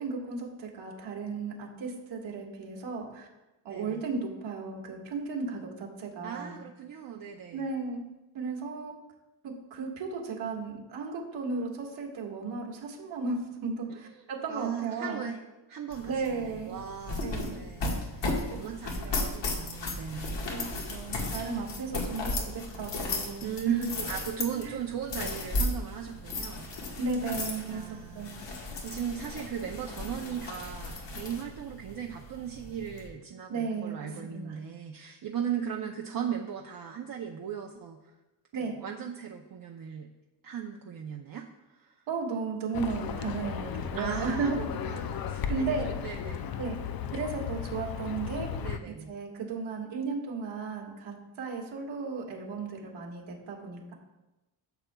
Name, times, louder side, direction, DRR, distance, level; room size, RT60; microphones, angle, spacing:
voice 1, 0.0-3.3 3.6-6.6 7.5-8.0 8.3-8.9 9.4-15.3 16.0-16.8 17.2-17.6 18.5-18.7 19.0-19.3 20.5-23.9 24.5-24.8 26.9-28.3 33.5-34.6 38.5-38.8 42.1-44.7 45.5-45.9 46.6-46.8 47.1-48.5 48.9-53.9, right 4 dB, 85° right, -1 dB, 1.9 m, -35 dB
voice 2, 3.7-4.0 6.2-7.7 14.5-15.4 15.7-20.4 23.4-26.7 27.6-28.4 28.7-38.0 38.5-40.1 40.4-41.9 43.9-45.7 46.0-46.5 48.6-49.1, right 8 dB, 50° right, 1 dB, 0.7 m, -37 dB
sound 1, 15.9-33.1, left 2 dB, 70° left, 1.7 m, -35 dB
Livestock farm animals working animals, 42.7-48.8, left 7 dB, 50° left, 0.5 m, -35 dB
12.5 x 7.0 x 2.3 m, 1.0 s
wide cardioid pair, 145°, 45 cm